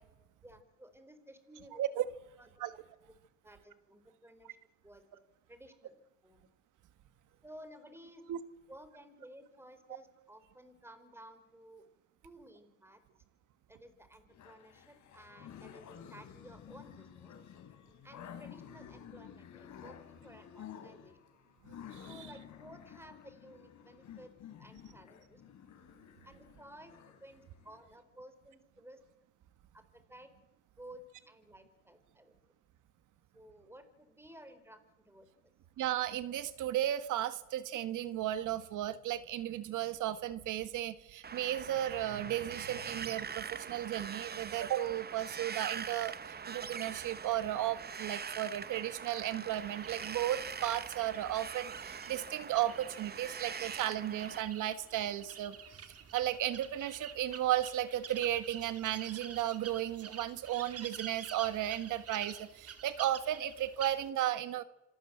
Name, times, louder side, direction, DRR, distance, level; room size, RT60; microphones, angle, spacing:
voice 1, 0.4-1.8 2.4-2.5 3.1-3.2 3.4-4.6 4.8-5.0 5.5-6.5 7.4-8.2 8.7-11.9 12.2-13.0 13.7-17.3 18.0-21.2 22.0-24.3 24.6-25.4 26.2-29.0 29.7-30.3 30.8-32.3 33.3-35.3, right 1 dB, 10° right, 10 dB, 4.1 m, -55 dB
sound 1, 14.3-27.8, left 8 dB, 70° left, 4.1 m, -52 dB
voice 2, 35.8-55.6 56.1-64.6, right 12 dB, 85° right, 13 dB, 1.6 m, -34 dB
Wind, 41.2-54.4, right 6 dB, 30° right, 0.9 m, -43 dB
sound 2, 49.5-64.1, right 7 dB, 50° right, 2.6 m, -49 dB
26.5 x 18.5 x 8.0 m, 1.0 s
cardioid pair, 90°, 30 cm